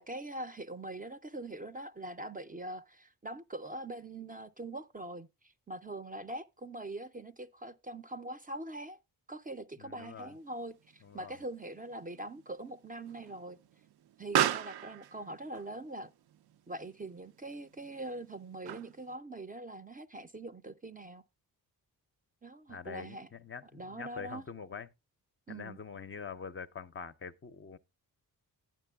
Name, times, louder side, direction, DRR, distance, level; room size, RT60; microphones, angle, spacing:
voice 1, 0.0-9.0 9.3-13.6 14.2-16.1 16.7-21.2 22.4-23.3 23.7-24.4 25.5-25.8, right 2 dB, 20° right, 0.4 m, -43 dB
voice 2, 9.8-10.4 11.0-11.4 22.7-24.9 25.5-27.8, left 6 dB, 35° left, 0.5 m, -45 dB
Explosion, 10.1-19.2, right 11 dB, 75° right, 0.5 m, -38 dB
11.0 x 9.1 x 2.2 m
cardioid pair, 70°, 39 cm